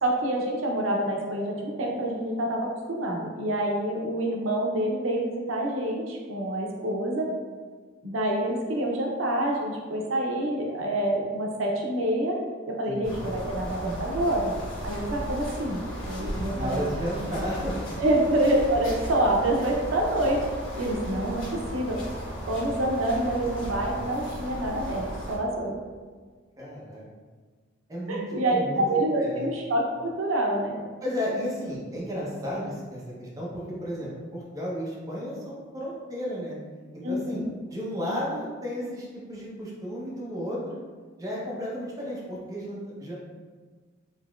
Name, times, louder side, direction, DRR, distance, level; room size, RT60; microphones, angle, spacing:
voice 1, 0.0-7.3 8.0-12.4 12.7-14.5 14.8-16.8 18.0-20.5 20.8-22.0 22.5-25.8 28.1-30.8 37.0-37.5, right 1 dB, 85° right, 0 dB, 0.5 m, -27 dB
voice 2, 12.8-13.2 16.5-17.8 26.6-27.0 27.9-28.2 28.5-29.5 31.0-36.6 36.9-37.4 37.7-40.8 41.2-43.1, equal, 15° right, -6 dB, 0.7 m, -33 dB
sound 1, 13.0-25.4, equal, 75° left, 1.4 m, -35 dB
3.9 x 2.9 x 2.3 m, 1.5 s
head